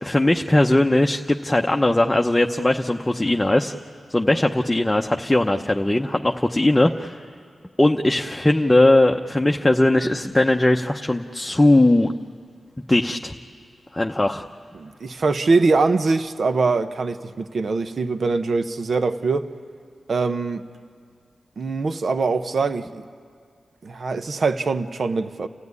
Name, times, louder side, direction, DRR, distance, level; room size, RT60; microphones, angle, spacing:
voice 1, 0.0-3.7 4.1-7.2 7.8-12.1 12.9-13.3 13.9-14.4, left 1 dB, 15° left, 3 dB, 0.8 m, -19 dB
voice 2, 14.7-19.5 20.1-20.6 21.6-23.0 23.8-25.5, right 3 dB, 65° right, 10 dB, 0.9 m, -23 dB
30.0 x 15.0 x 9.6 m, 2.2 s
cardioid pair, 65°, 0 cm